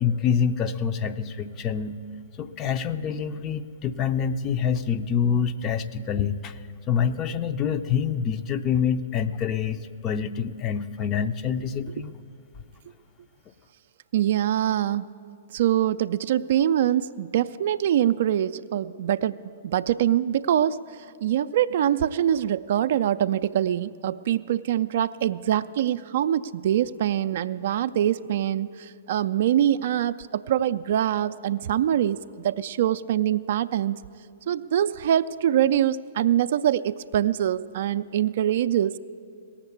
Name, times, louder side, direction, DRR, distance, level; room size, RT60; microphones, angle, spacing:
voice 1, 0.0-2.0 2.4-6.6 6.9-12.1, left 7 dB, 30° left, 10 dB, 0.5 m, -26 dB
voice 2, 14.1-15.1 15.5-19.4 19.6-20.8 21.2-34.0 34.5-39.0, right 11 dB, 55° right, 13 dB, 0.3 m, -24 dB
17.0 x 7.2 x 8.2 m, 2.3 s
figure-of-eight pair, 110°, 0 cm